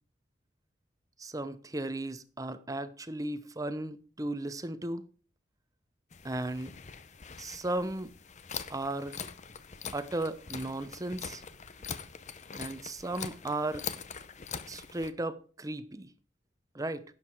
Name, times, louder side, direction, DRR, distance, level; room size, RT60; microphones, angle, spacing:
voice 1, 1.2-5.0 6.2-6.7 7.4-8.1 8.7-9.1 9.9-11.4 12.5-13.8 14.7-16.1 16.7-17.0, right 2 dB, 20° right, 0.8 m, -35 dB
sound 1, 6.1-15.1, left 6 dB, 40° left, 0.8 m, -43 dB
11.5 x 7.8 x 4.5 m
head